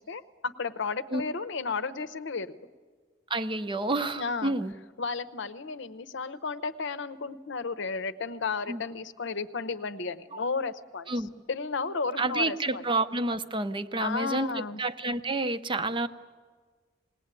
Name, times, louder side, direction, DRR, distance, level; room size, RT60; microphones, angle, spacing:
voice 1, 0.1-2.5 4.2-4.5 5.0-11.1 11.5-12.8 14.0-14.8, left 4 dB, 65° left, 12 dB, 0.8 m, -33 dB
voice 2, 3.3-4.7 8.7-8.8 10.3-10.4 11.1-11.3 12.2-16.1, right 2 dB, 25° right, 11 dB, 0.7 m, -29 dB
20.0 x 19.0 x 9.0 m, 1.5 s
head